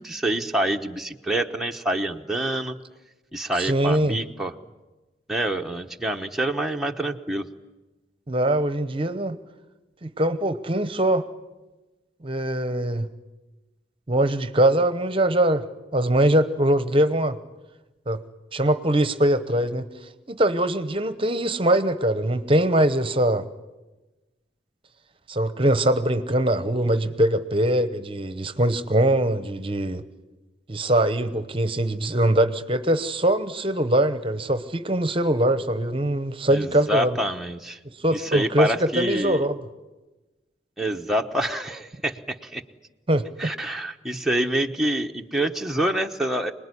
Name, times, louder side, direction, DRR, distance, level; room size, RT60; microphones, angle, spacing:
voice 1, 0.0-2.8 3.3-4.5 5.3-7.4 36.5-37.8 38.1-39.5 40.8-42.6 43.4-46.5, right 1 dB, ahead, 2 dB, 1.0 m, -26 dB
voice 2, 3.6-4.2 8.3-9.4 10.0-11.2 12.2-13.1 14.1-15.6 15.9-17.4 18.1-18.2 18.5-19.9 20.3-23.4 25.3-30.0 30.7-37.2 38.0-39.6 43.1-43.5, right 1 dB, 30° right, 12 dB, 1.0 m, -22 dB
26.5 x 20.0 x 9.9 m, 1.1 s
head